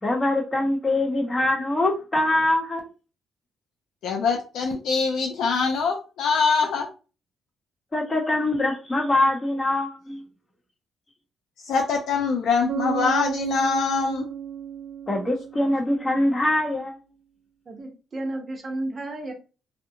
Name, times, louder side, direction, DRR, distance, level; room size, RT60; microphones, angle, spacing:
voice 1, 0.0-2.8 7.9-10.2 15.1-17.0, left 1 dB, 25° left, 0.9 m, -23 dB
voice 2, 4.0-6.9 11.6-14.3, left 5 dB, 80° left, 0.4 m, -23 dB
Bass guitar, 12.7-16.3, right 9 dB, 90° right, 0.3 m, -33 dB
voice 3, 17.7-19.3, right 1 dB, 40° right, 0.7 m, -32 dB
2.7 x 2.1 x 2.6 m
cardioid pair, 90°, 0 cm